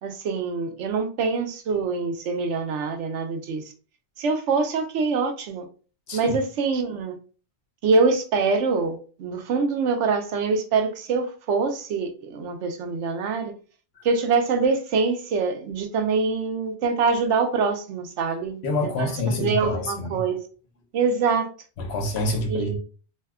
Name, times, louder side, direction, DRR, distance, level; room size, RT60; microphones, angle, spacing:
voice 1, 0.0-3.6 4.2-5.7 6.1-7.2 7.8-13.5 14.0-18.6 19.0-20.4 20.9-21.5 22.5-22.8, right 4 dB, 80° right, 0.9 m, -24 dB
voice 2, 18.6-20.2 21.8-22.8, left 1 dB, 65° left, 0.9 m, -27 dB
2.7 x 2.2 x 3.4 m
omnidirectional pair, 1.2 m